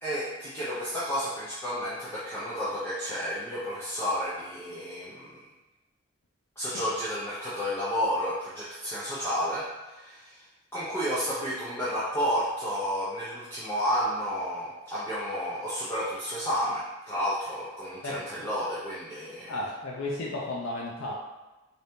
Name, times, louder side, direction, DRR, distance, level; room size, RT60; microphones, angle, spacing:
voice 1, 0.0-5.4 6.6-10.4 10.7-19.6, equal, 10° left, -10 dB, 0.6 m, -31 dB
voice 2, 19.5-21.1, left 2 dB, 85° left, -4 dB, 0.5 m, -33 dB
3.9 x 2.8 x 3.5 m, 1.1 s
head